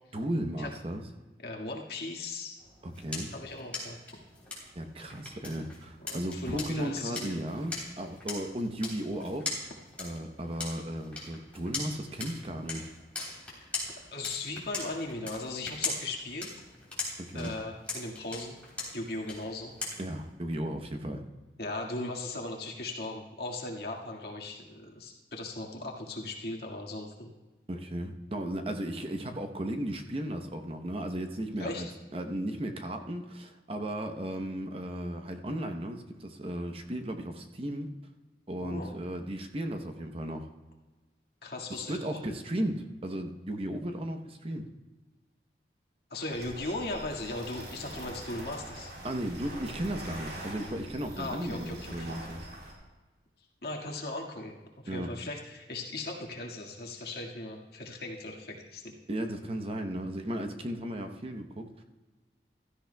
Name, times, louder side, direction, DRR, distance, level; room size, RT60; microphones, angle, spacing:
voice 1, 0.1-1.0 2.8-3.3 4.7-9.5 10.0-12.9 17.2-17.5 20.0-21.2 27.7-37.9 38.5-40.5 41.8-44.6 49.0-52.5 54.9-55.1 59.1-61.8, right 1 dB, 30° right, 5 dB, 0.8 m, -35 dB
voice 2, 1.4-2.6 3.3-4.0 6.1-7.4 13.6-13.7 14.1-16.6 17.3-18.6 18.9-19.7 21.6-27.3 31.6-31.9 38.6-38.9 41.4-42.1 46.1-48.9 51.2-52.2 53.6-54.6 54.8-58.9, left 2 dB, 60° left, -1 dB, 1.8 m, -38 dB
sound 1, 2.6-20.3, left 3 dB, 10° left, 3.3 m, -41 dB
sound 2, 46.3-52.7, right 1 dB, 70° right, 3.5 m, -43 dB
16.0 x 13.0 x 2.3 m, 1.2 s
head